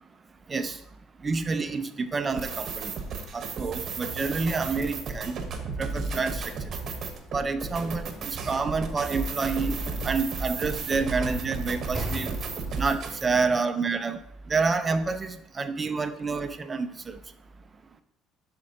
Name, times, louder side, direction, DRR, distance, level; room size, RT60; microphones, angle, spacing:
voice 1, 1.2-2.9 3.3-5.4 5.8-6.4 7.3-9.7 10.0-12.4 12.8-14.2 14.5-17.2, right 4 dB, 25° right, 10 dB, 0.5 m, -28 dB
sound 1, 2.3-13.3, right 4 dB, 50° right, 1.0 m, -33 dB
Sliding door / Slam, 8.3-13.0, equal, ahead, 2.1 m, -42 dB
10.5 x 4.3 x 2.8 m, 0.74 s
cardioid pair, 100°, 0 cm